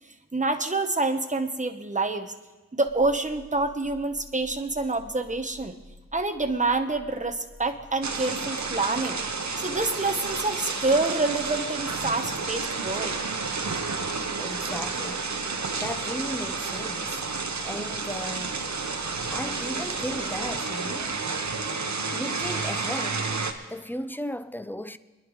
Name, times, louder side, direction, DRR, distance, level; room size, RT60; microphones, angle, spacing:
voice 1, 0.3-2.3 2.7-5.8 6.1-9.2 9.6-13.2, right 3 dB, 25° right, 1.1 m, -27 dB
sound 1, 2.9-20.6, left 2 dB, 40° left, 2.0 m, -52 dB
sound 2, 8.0-23.5, right 4 dB, 70° right, 1.0 m, -31 dB
voice 2, 14.4-15.3 15.8-17.2 17.6-18.6 19.3-21.2 22.1-23.3 23.7-25.0, equal, 5° left, 0.5 m, -35 dB
24.0 x 11.0 x 3.2 m
wide cardioid pair, 50°, 29 cm